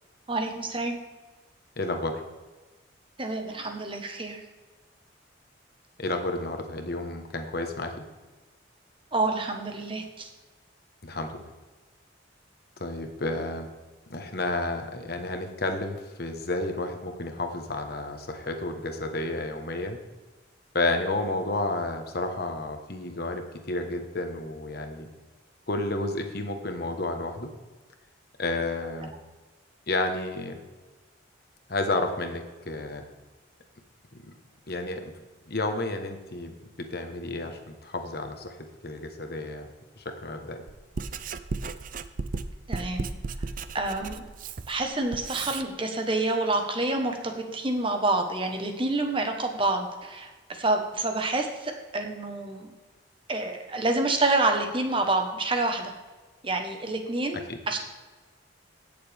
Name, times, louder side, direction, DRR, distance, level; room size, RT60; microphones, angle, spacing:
voice 1, 0.3-1.0 3.2-4.4 9.1-10.3 42.7-43.1 43.7-44.2 44.7-52.7 53.3-55.9 56.4-57.8, right 2 dB, 25° right, 4 dB, 1.2 m, -28 dB
voice 2, 1.8-2.2 6.0-8.0 11.0-11.4 12.8-13.7 14.1-20.0 20.7-25.1 25.7-27.5 28.4-29.1 29.9-30.6 31.7-33.0 34.7-35.0 35.5-36.5 36.9-39.7 40.0-40.6 57.5-57.6, left 2 dB, 55° left, 5 dB, 1.3 m, -31 dB
Writing, 40.7-45.7, right 4 dB, 45° right, 0.5 m, -35 dB
16.5 x 7.0 x 3.5 m, 1.3 s
head